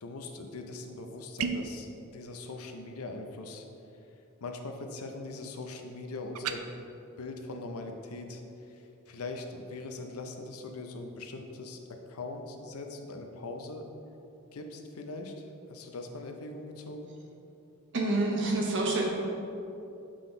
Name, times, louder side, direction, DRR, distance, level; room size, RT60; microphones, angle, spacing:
voice 1, 0.0-3.7 4.4-6.7 7.2-11.8 12.1-13.8 14.5-17.1, left 2 dB, 85° left, 4 dB, 0.6 m, -41 dB
sound 1, 1.4-1.8 6.3-6.6, right 6 dB, 90° right, 0.4 m, -32 dB
voice 2, 17.9-19.1, right 2 dB, 60° right, -1 dB, 1.0 m, -27 dB
7.5 x 3.9 x 3.8 m, 2.9 s
head